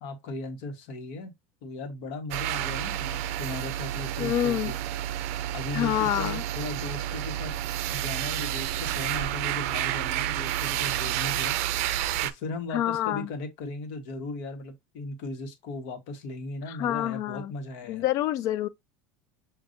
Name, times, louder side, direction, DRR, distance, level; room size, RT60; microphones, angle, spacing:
voice 1, 0.0-1.3 1.6-4.8 5.5-7.5 7.9-11.6 12.2-18.0, left 2 dB, 65° left, 1.3 m, -37 dB
sound 1, 2.3-12.3, right 12 dB, 70° right, 0.4 m, -30 dB
voice 2, 4.2-4.7 5.7-6.4 12.7-13.3 16.7-17.5 17.9-18.7, left 12 dB, 45° left, 0.4 m, -27 dB
6.3 x 2.6 x 2.6 m
supercardioid pair, 145°, 8 cm